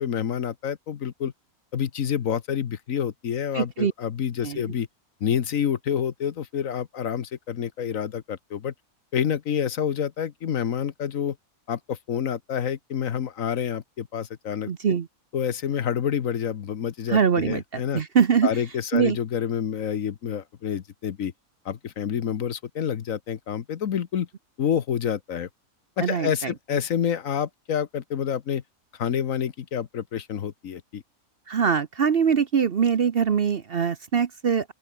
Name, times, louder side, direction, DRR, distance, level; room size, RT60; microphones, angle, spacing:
voice 1, 0.0-1.3 1.7-4.9 5.2-8.7 9.1-11.4 11.7-14.9 15.3-18.0 18.4-21.3 21.6-24.3 24.6-25.5 26.0-28.6 29.0-31.0, left 8 dB, 65° left, 1.4 m, -28 dB
voice 2, 3.5-3.9 4.4-4.6 14.7-15.1 17.1-18.6 18.9-19.2 26.0-26.5 31.5-34.7, right 7 dB, 45° right, 0.9 m, -23 dB
open air
omnidirectional pair, 1.5 m